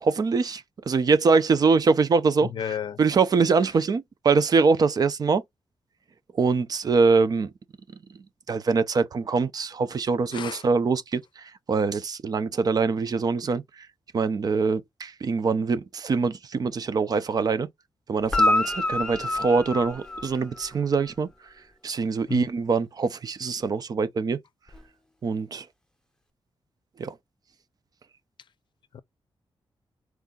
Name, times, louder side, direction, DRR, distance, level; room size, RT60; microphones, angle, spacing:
voice 1, 0.0-2.7 3.0-5.4 6.3-7.5 8.5-13.6 14.1-17.7 18.1-21.3 21.8-24.4 25.2-25.7 27.0-27.1, right 4 dB, 45° right, 0.5 m, -23 dB
voice 2, 2.4-3.0 10.3-10.6 22.3-22.5 28.9-29.0, left 7 dB, 60° left, 0.5 m, -32 dB
Guitar, 18.2-20.8 24.7-24.8, left 2 dB, 10° left, 0.8 m, -26 dB
4.6 x 2.6 x 3.7 m
wide cardioid pair, 165°, 9 cm